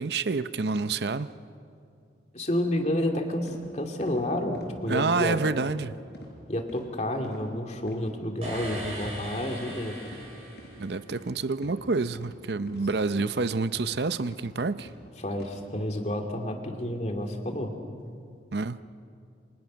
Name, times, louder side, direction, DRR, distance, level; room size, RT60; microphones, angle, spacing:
voice 1, 0.0-1.3 4.9-6.0 10.8-14.9 18.5-18.8, right 4 dB, 70° right, 0.7 m, -28 dB
voice 2, 2.3-5.4 6.5-10.1 15.2-17.7, left 1 dB, 40° left, 2.6 m, -30 dB
sound 1, 3.5-3.6 4.0-4.2 4.5-4.7 5.1-5.2 5.6-5.8 6.1-6.3 6.7-6.9 7.2-7.4 7.8-8.0 8.4-8.6 8.9-9.1 9.6-9.7 10.0-10.2 10.6-10.7 11.1-11.3 11.6-11.8 12.1-12.3 12.7-12.8 13.2-13.4 13.7-13.9 14.3-14.4 14.8-15.0 15.3-15.5, equal, 65° left, 5.8 m, -47 dB
sound 2, 8.4-11.2, right 1 dB, 35° right, 7.1 m, -39 dB
29.0 x 25.5 x 6.3 m
head